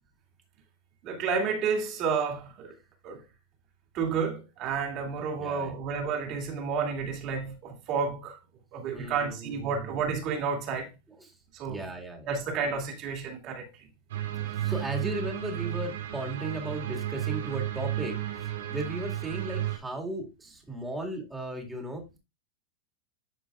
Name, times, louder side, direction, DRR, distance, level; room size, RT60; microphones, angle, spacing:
voice 1, 1.0-2.7 3.0-3.2 3.9-8.4 8.7-10.9 11.5-11.9 12.3-13.7, right 5 dB, 35° right, 2.5 m, -31 dB
voice 2, 5.4-5.8 8.9-10.2 11.2-11.3 11.7-12.3 14.4-22.2, right 1 dB, 10° right, 2.0 m, -36 dB
sound 1, 14.1-19.8, right 13 dB, 80° right, 2.7 m, -33 dB
12.0 x 5.0 x 2.4 m
supercardioid pair, 150°, 0 cm